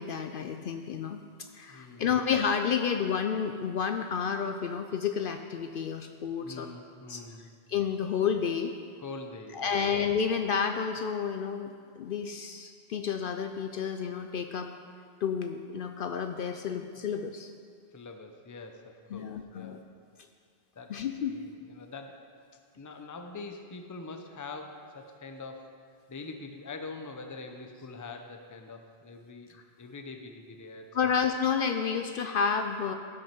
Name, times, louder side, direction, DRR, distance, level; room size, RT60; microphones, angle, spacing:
voice 1, 0.0-6.7 7.1-7.2 7.7-8.7 9.5-14.7 15.2-17.5 19.1-19.8 20.9-21.4 30.9-32.9, left 6 dB, 65° left, 6 dB, 0.7 m, -30 dB
voice 2, 1.7-2.2 6.4-7.5 9.0-10.0 17.9-19.9 20.7-22.2 22.8-25.7 26.1-31.2, left 3 dB, 20° left, 5 dB, 0.6 m, -44 dB
16.0 x 6.2 x 4.5 m, 2.1 s
omnidirectional pair, 1.1 m